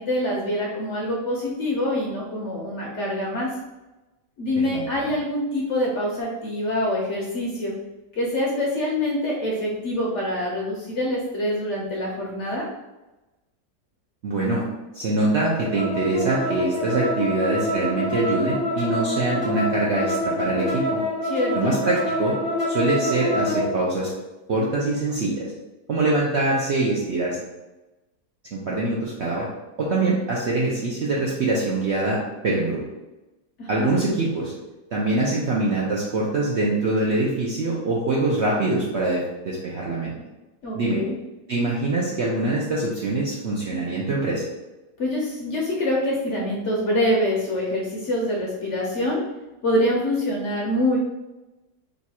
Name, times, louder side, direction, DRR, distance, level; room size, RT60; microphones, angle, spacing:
voice 1, 0.0-3.5 4.4-7.7 8.1-12.7 21.2-21.7 33.6-33.9 40.6-41.1 45.0-49.2 49.6-51.0, left 1 dB, 60° left, -3 dB, 0.8 m, -25 dB
voice 2, 4.6-5.1 14.2-14.6 14.9-21.0 21.5-22.4 22.7-24.1 24.5-25.4 25.9-27.4 28.5-29.5 29.8-32.8 33.7-34.5 34.9-40.1 40.7-41.0 41.5-44.4, right 2 dB, 65° right, -4 dB, 0.7 m, -24 dB
sound 1, 15.4-23.7, left 1 dB, 30° left, 0.6 m, -26 dB
3.0 x 2.4 x 4.2 m, 1.0 s
omnidirectional pair, 1.7 m